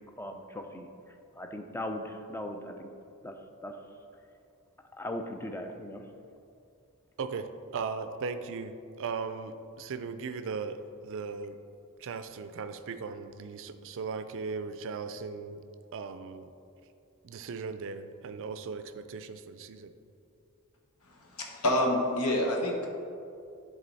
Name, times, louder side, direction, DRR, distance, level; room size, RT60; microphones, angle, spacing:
voice 1, 0.2-0.9 1.4-2.9 3.2-3.3 3.6-3.7 4.9-6.0, left 1 dB, 10° left, 4 dB, 0.4 m, -38 dB
voice 2, 7.2-11.6 12.0-15.6 15.9-16.5 17.2-19.9, right 5 dB, 60° right, 10 dB, 0.4 m, -38 dB
voice 3, 21.1-22.9, left 1 dB, 75° left, 0 dB, 1.1 m, -28 dB
10.0 x 3.8 x 4.1 m, 2.5 s
head